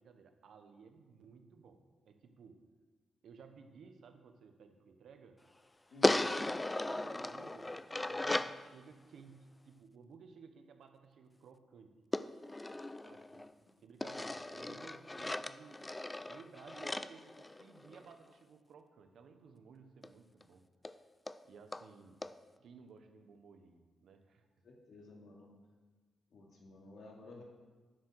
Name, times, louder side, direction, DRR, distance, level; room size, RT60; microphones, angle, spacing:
voice 1, 0.0-2.6 3.2-5.4 5.9-7.8 8.1-12.0 13.0-13.5 13.8-15.9 16.3-20.6 21.4-22.2 22.6-24.4, right 5 dB, 65° right, 7 dB, 1.1 m, -57 dB
voice 2, 5.9-6.2 13.3-13.4 24.6-25.5 26.3-27.4, left 2 dB, 60° left, -1 dB, 2.5 m, -54 dB
sound 1, 6.0-8.6 12.1-13.5 14.0-18.1 20.0-20.1 20.4-20.5 20.8-20.9 21.3-21.4 21.7-21.8 22.2-22.3, left 2 dB, 10° left, 0.3 m, -36 dB
10.5 x 7.9 x 6.3 m, 1.4 s
wide cardioid pair, 150°, 0 cm